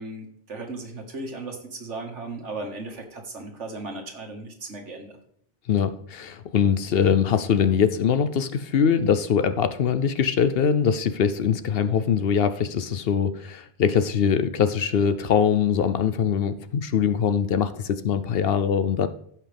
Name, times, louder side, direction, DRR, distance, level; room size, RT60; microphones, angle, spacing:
voice 1, 0.0-5.2, right 2 dB, 80° right, 3 dB, 2.1 m, -36 dB
voice 2, 5.7-19.1, left 7 dB, 65° left, 12 dB, 0.8 m, -22 dB
15.5 x 5.9 x 3.4 m, 0.68 s
omnidirectional pair, 1.2 m